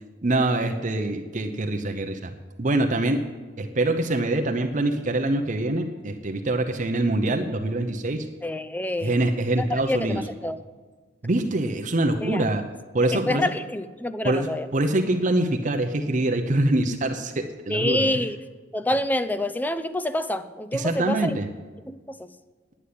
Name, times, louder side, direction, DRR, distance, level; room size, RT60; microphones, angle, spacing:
voice 1, 0.2-2.3 2.6-3.2 3.6-8.3 9.0-10.2 11.2-12.6 12.9-13.4 14.2-18.1 20.7-21.5, right 2 dB, 45° right, 4 dB, 0.7 m, -24 dB
voice 2, 8.4-9.2 9.7-10.1 10.4-10.6 12.2-12.4 13.1-14.7 17.7-18.4 18.7-21.4 21.9-22.3, left 1 dB, 10° left, 11 dB, 0.5 m, -27 dB
9.9 x 9.5 x 8.4 m, 1.4 s
head